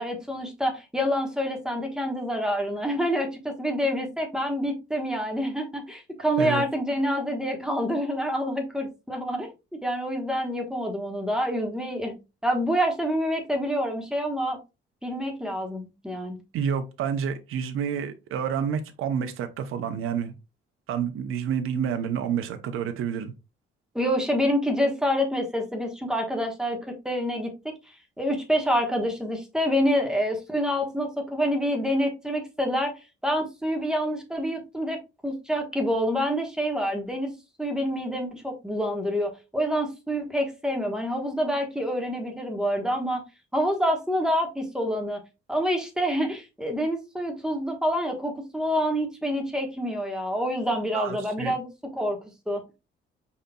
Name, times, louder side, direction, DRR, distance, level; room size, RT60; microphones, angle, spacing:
voice 1, 0.0-12.1 12.4-14.6 15.0-16.4 23.9-27.7 28.2-32.9 33.2-37.3 37.6-43.2 43.5-45.2 45.5-52.2 52.5-52.6, equal, 5° right, 1.2 m, -27 dB
voice 2, 16.5-20.3 20.9-23.3 50.9-51.5, right 7 dB, 80° right, 0.8 m, -29 dB
5.1 x 4.1 x 2.3 m
cardioid pair, 110°, 21 cm